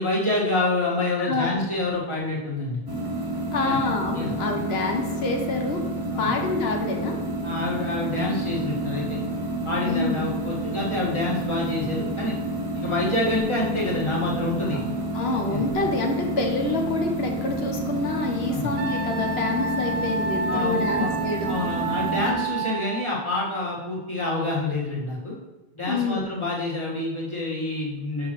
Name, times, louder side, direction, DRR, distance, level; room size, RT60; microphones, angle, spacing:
voice 1, 0.0-2.8 3.6-3.8 4.1-4.3 6.1-6.3 7.4-9.2 9.6-12.3 12.7-14.8 15.5-15.6 18.5-18.7 20.5-21.1 21.4-25.4 25.7-28.3, left 2 dB, 30° left, -6 dB, 1.7 m, -27 dB
voice 2, 1.2-1.6 3.5-5.8 6.2-7.2 9.8-10.2 15.1-21.6 25.9-26.3, left 3 dB, 80° left, 3 dB, 1.2 m, -27 dB
sound 1, 2.9-22.3, right 1 dB, 25° right, 0.7 m, -29 dB
Wind instrument woodwind instrument, 18.8-23.0, right 3 dB, 80° right, 0.9 m, -29 dB
6.5 x 5.6 x 3.1 m, 1.1 s
omnidirectional pair, 1.0 m